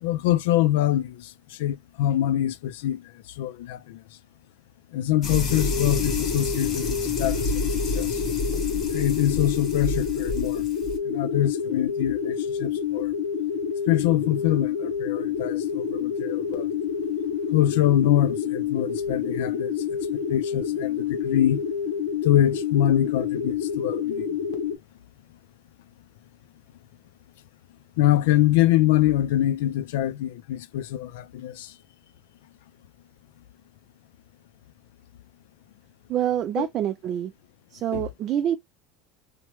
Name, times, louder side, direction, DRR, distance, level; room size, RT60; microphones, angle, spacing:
voice 1, 0.0-3.0 3.4-4.0 4.9-7.6 7.9-8.2 8.9-10.6 11.1-13.1 13.9-16.7 17.5-19.7 20.1-21.6 22.2-24.4 28.0-31.7 36.6-36.7 37.9-38.1, left 13 dB, 90° left, 0.4 m, -24 dB
sound 1, 5.2-11.0, left 2 dB, 30° left, 1.0 m, -30 dB
sound 2, 5.5-24.8, left 7 dB, 65° left, 0.9 m, -28 dB
voice 2, 36.1-37.3 37.7-38.6, right 10 dB, 40° right, 0.3 m, -26 dB
3.0 x 2.1 x 3.0 m
cardioid pair, 150°, 0 cm